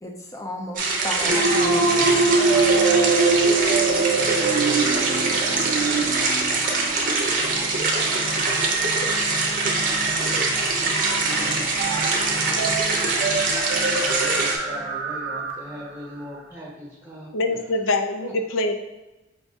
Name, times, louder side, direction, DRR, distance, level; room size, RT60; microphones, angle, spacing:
voice 1, 0.0-2.4, left 1 dB, 15° left, 1 dB, 0.5 m, -34 dB
sound 1, 0.8-14.6, right 3 dB, 40° right, 0.7 m, -23 dB
sound 2, 1.3-15.8, right 3 dB, 75° right, 0.6 m, -25 dB
voice 2, 8.8-9.3 11.9-12.1 17.3-18.7, left 2 dB, 75° left, 7 dB, 0.5 m, -26 dB
voice 3, 14.1-17.3 17.6-17.8 18.2-18.3, equal, 10° right, -4 dB, 0.9 m, -38 dB
5.2 x 2.6 x 3.5 m, 1.1 s
head